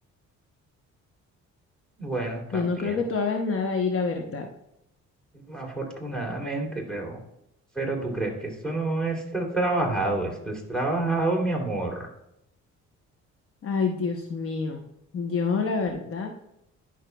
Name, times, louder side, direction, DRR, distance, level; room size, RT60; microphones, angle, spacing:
voice 1, 2.0-3.0 5.5-7.2 7.7-12.1, right 2 dB, 5° left, 0 dB, 2.9 m, -28 dB
voice 2, 2.5-4.5 13.6-14.8 15.1-16.3, left 4 dB, 50° left, 3 dB, 0.9 m, -27 dB
11.0 x 6.3 x 2.3 m, 0.80 s
cardioid pair, 90°, 30 cm